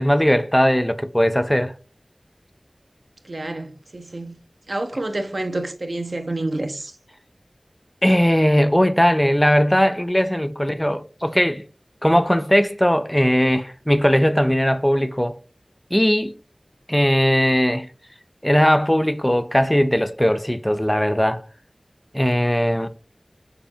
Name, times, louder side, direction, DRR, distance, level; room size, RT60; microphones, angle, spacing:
voice 1, 0.0-1.7 8.0-11.6 12.0-15.4 15.9-16.4 16.9-17.9 18.4-21.4 22.1-22.9, equal, 10° left, 0.3 m, -19 dB
voice 2, 3.2-4.4 4.7-6.9, right 2 dB, 75° right, 0.5 m, -28 dB
4.2 x 3.2 x 2.7 m
wide cardioid pair, 40°, 0 cm